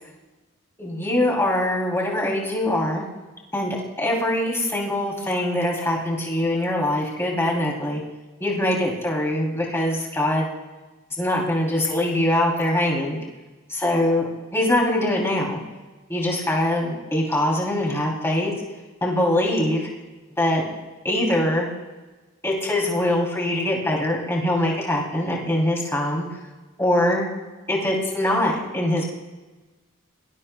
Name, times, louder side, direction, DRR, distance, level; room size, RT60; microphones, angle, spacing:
voice 1, 0.8-3.1 3.5-8.0 8.4-10.5 11.2-13.2 13.7-15.6 16.1-18.5 19.0-19.9 20.4-20.6 21.0-21.7 22.4-26.2 26.8-27.3 27.7-29.0, left 1 dB, 10° left, -3 dB, 3.0 m, -23 dB
25.5 x 19.5 x 2.3 m, 1.2 s
head